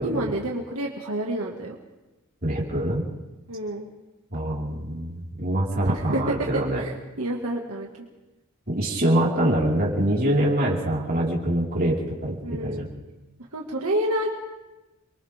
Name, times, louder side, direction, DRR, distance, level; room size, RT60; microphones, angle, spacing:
voice 1, 0.0-1.8 3.5-3.9 5.9-6.2 6.8-7.9 12.4-12.9 13.5-14.3, right 1 dB, 85° right, -1 dB, 2.2 m, -29 dB
voice 2, 2.4-3.0 4.3-6.8 8.7-12.9, right 1 dB, 45° right, -4 dB, 5.0 m, -24 dB
30.0 x 23.0 x 3.7 m, 1.1 s
head